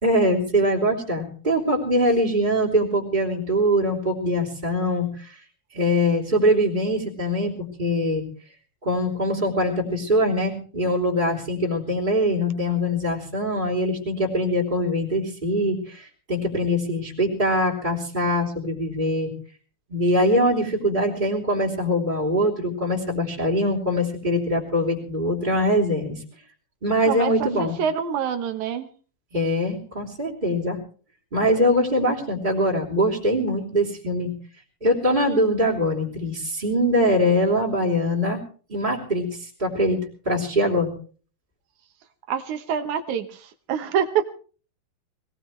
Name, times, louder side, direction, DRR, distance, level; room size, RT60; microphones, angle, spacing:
voice 1, 0.0-5.4 5.7-8.2 8.8-19.3 19.9-26.1 26.8-27.7 29.3-30.8 31.3-34.3 34.8-38.4 38.7-40.9, equal, 15° right, 0 dB, 3.2 m, -23 dB
voice 2, 27.0-28.9 42.3-44.3, right 8 dB, 65° right, 9 dB, 2.1 m, -26 dB
21.5 x 19.0 x 3.2 m, 0.40 s
omnidirectional pair, 4.2 m